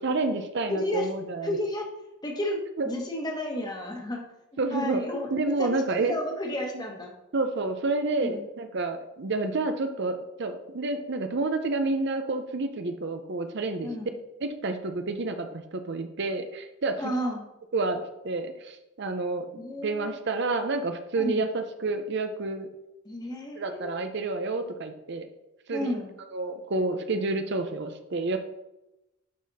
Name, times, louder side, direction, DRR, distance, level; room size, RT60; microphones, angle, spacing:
voice 1, 0.0-1.6 2.8-2.9 4.6-5.0 5.3-6.1 7.3-13.9 14.4-17.1 17.7-19.5 19.8-22.7 23.6-25.3 25.7-26.0 26.3-28.4, right 3 dB, 55° right, 7 dB, 0.6 m, -29 dB
voice 2, 0.7-1.1 1.4-1.9 2.2-4.2 4.7-7.1 8.2-8.4 13.8-14.1 17.0-17.4 19.6-20.1 21.1-21.4 23.0-24.0 25.7-26.1, left 1 dB, 20° left, 1 dB, 1.3 m, -32 dB
11.0 x 4.1 x 4.1 m, 0.93 s
head